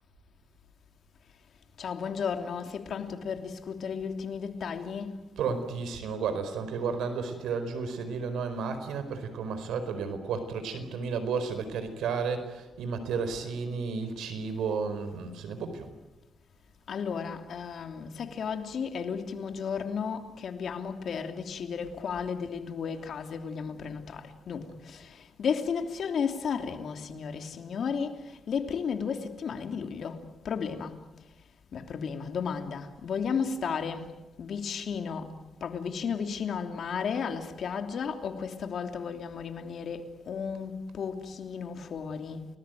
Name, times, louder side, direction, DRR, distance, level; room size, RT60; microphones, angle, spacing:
voice 1, 1.8-5.2 16.9-30.2 30.4-31.0 31.7-35.3 35.6-42.5, left 6 dB, 60° left, 3.1 m, -34 dB
voice 2, 5.4-15.9, right 5 dB, 90° right, 4.7 m, -32 dB
30.0 x 20.0 x 9.3 m
cardioid pair, 115°, 0 cm